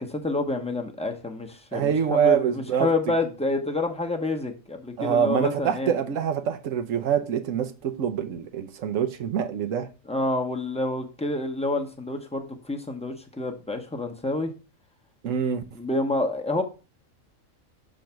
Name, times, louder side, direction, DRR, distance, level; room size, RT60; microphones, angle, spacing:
voice 1, 0.1-5.9 10.1-14.5 15.8-16.6, left 2 dB, 5° left, 0.7 m, -28 dB
voice 2, 1.7-2.9 5.0-9.9 15.2-15.6, right 8 dB, 70° right, 1.1 m, -25 dB
6.3 x 3.9 x 5.7 m
omnidirectional pair, 1.4 m